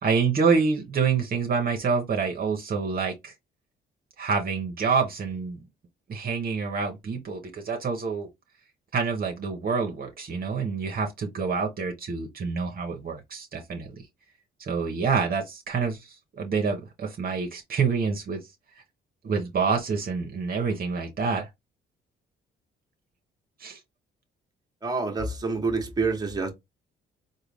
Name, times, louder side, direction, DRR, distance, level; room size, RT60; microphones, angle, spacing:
voice 1, 0.0-3.3 4.2-5.6 6.1-8.3 8.9-14.0 14.6-18.4 19.2-21.5 23.6-23.8, right 5 dB, 50° right, 0.9 m, -27 dB
voice 2, 24.8-26.5, right 3 dB, 20° right, 1.2 m, -27 dB
3.7 x 2.2 x 3.4 m
cardioid pair, 90°, 20 cm